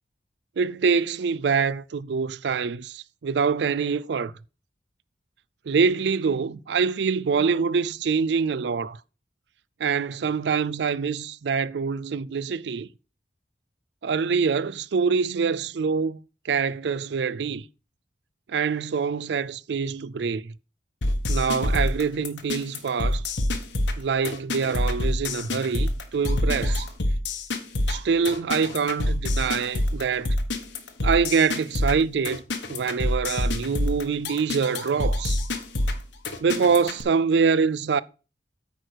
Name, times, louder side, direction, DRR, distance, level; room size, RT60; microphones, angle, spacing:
voice 1, 0.6-4.3 5.7-9.0 9.8-12.9 14.0-17.7 18.5-20.5 21.3-23.2 24.0-26.9 27.9-30.3 31.0-32.4 32.7-35.4 36.4-38.0, right 5 dB, 70° right, 0.4 m, -25 dB
sound 1, 21.0-37.0, left 1 dB, 75° left, 1.3 m, -26 dB
9.0 x 4.6 x 6.2 m
head